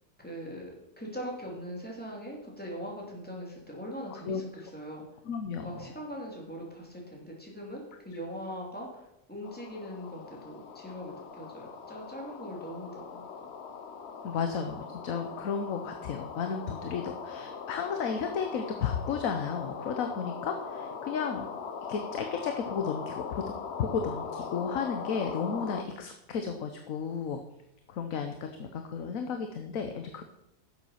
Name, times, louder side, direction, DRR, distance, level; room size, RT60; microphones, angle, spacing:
voice 1, 0.2-5.0 5.6-13.4, equal, 5° left, -2 dB, 3.0 m, -41 dB
voice 2, 4.1-4.4 5.2-6.0 14.2-21.5 21.9-27.4 27.9-30.2, left 6 dB, 70° left, 6 dB, 1.3 m, -33 dB
sound 1, 9.4-25.8, left 6 dB, 55° left, 1.1 m, -40 dB
11.0 x 7.7 x 5.7 m, 0.86 s
omnidirectional pair, 1.5 m